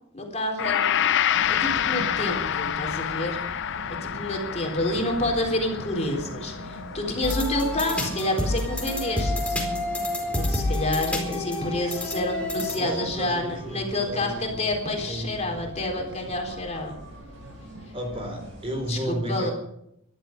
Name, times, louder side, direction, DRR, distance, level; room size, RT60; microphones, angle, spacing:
voice 1, 0.1-1.1 1.5-3.4 4.0-9.6 10.4-17.0 18.9-19.5, left 1 dB, 35° left, 1 dB, 3.9 m, -28 dB
Gong, 0.6-9.0 9.4-9.5, left 10 dB, 60° left, 0.6 m, -28 dB
sound 1, 1.3-18.9, right 1 dB, 65° right, 7.7 m, -42 dB
sound 2, 7.2-13.0, left 2 dB, 5° left, 4.4 m, -28 dB
voice 2, 12.8-16.4 17.9-19.5, equal, 30° right, 4 dB, 4.2 m, -34 dB
21.0 x 12.5 x 5.3 m, 0.76 s
head